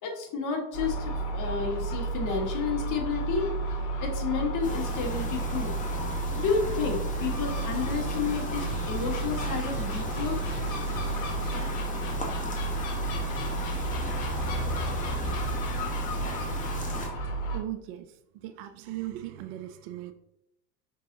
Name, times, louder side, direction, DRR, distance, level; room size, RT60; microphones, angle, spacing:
voice 1, 0.0-3.6 4.0-5.7 6.4-10.4, left 5 dB, 40° left, 2 dB, 1.4 m, -31 dB
Gull seagull, 0.7-17.6, right 2 dB, 60° left, 1.1 m, -32 dB
sound 1, 4.6-17.1, left 2 dB, 15° left, 1.0 m, -37 dB
sound 2, 7.6-17.4, right 2 dB, 35° right, 1.2 m, -44 dB
voice 2, 17.5-20.1, right 13 dB, 55° right, 10 dB, 0.5 m, -38 dB
5.3 x 3.6 x 2.7 m, 0.81 s
hypercardioid pair, 80°, 47 cm